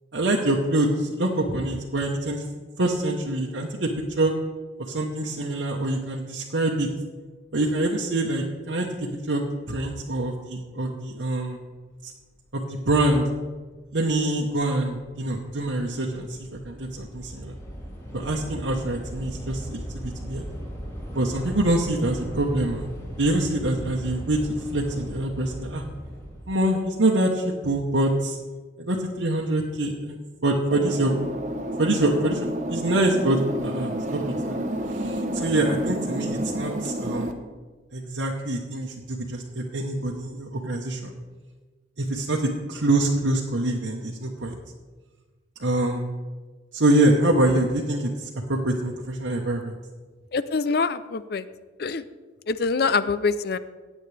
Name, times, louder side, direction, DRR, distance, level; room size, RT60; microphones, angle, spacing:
voice 1, 0.1-2.4 2.8-3.9 4.2-4.3 4.8-6.9 7.5-11.6 12.5-13.3 13.9-16.4 16.6-17.6 18.1-20.4 21.1-22.9 23.2-25.8 26.5-28.4 28.8-30.2 30.4-31.1 31.8-34.6 35.0-37.4 37.9-41.1 42.0-44.6 45.6-46.0 46.7-49.7, right 1 dB, 80° right, -2 dB, 1.1 m, -25 dB
Train / Subway metro underground, 13.5-13.7 14.0-26.5, equal, 15° left, 2.4 m, -38 dB
sound 1, 30.7-37.3, right 1 dB, 40° right, 0.8 m, -30 dB
voice 2, 50.3-51.5 51.8-52.0 52.5-53.6, left 4 dB, 55° left, 14 dB, 0.5 m, -24 dB
16.0 x 9.5 x 3.4 m, 1.3 s
head